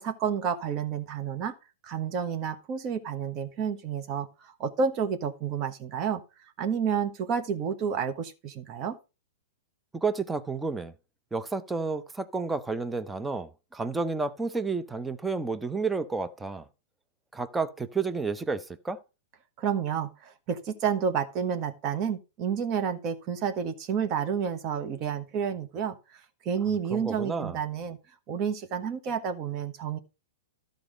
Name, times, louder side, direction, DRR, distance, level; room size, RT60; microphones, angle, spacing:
voice 1, 0.0-1.5 1.8-6.2 6.6-9.0 19.6-28.0 28.3-30.0, right 7 dB, 35° right, 1.4 m, -30 dB
voice 2, 9.9-10.9 11.3-16.6 17.3-19.0 26.9-27.6, right 4 dB, 10° right, 0.7 m, -31 dB
12.5 x 5.2 x 5.1 m
hypercardioid pair, 120°, 0 cm